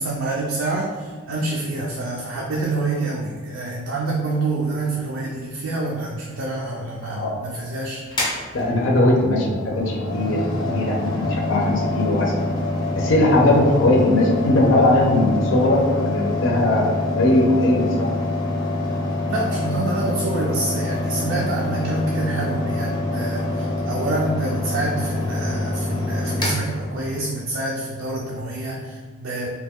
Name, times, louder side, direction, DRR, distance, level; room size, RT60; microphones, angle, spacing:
voice 1, 0.0-8.0 19.3-29.5, right 2 dB, 70° right, -2 dB, 0.4 m, -27 dB
voice 2, 7.0-7.4 8.5-10.4 10.7-12.3 12.9-18.1, left 1 dB, 70° left, -1 dB, 0.5 m, -19 dB
Mechanical fan, 8.1-27.4, left 2 dB, 20° left, 0.6 m, -25 dB
3.0 x 2.2 x 3.5 m, 1.5 s
head